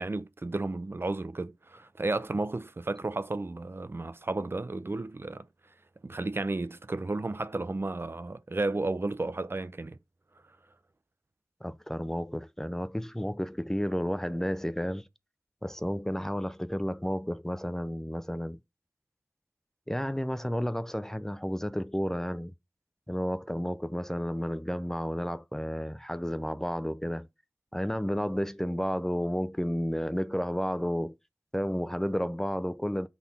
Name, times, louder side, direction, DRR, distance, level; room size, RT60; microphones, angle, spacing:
voice 1, 0.0-5.4 6.0-10.0, right 2 dB, 45° right, 0.5 m, -33 dB
voice 2, 11.6-15.1 15.6-18.6 19.9-22.5 23.1-27.3 27.7-31.2 31.5-33.1, equal, 10° left, 0.4 m, -32 dB
5.6 x 4.0 x 4.1 m
wide cardioid pair, 60°, 6 cm